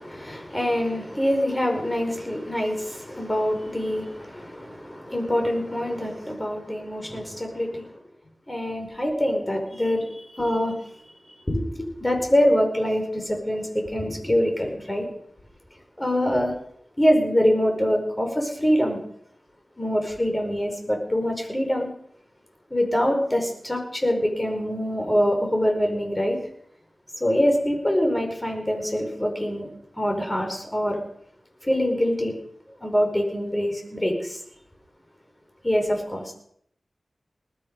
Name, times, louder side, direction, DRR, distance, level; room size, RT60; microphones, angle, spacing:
voice 1, 0.0-8.0 8.5-10.8 11.5-15.1 16.0-16.5 17.0-19.0 19.8-21.9 22.7-26.4 27.2-29.7 29.9-31.0 31.6-32.3 32.8-34.4 35.6-36.3, equal, 20° left, 3 dB, 4.8 m, -24 dB
20.0 x 13.0 x 5.3 m, 0.68 s
wide cardioid pair, 80°, 0 cm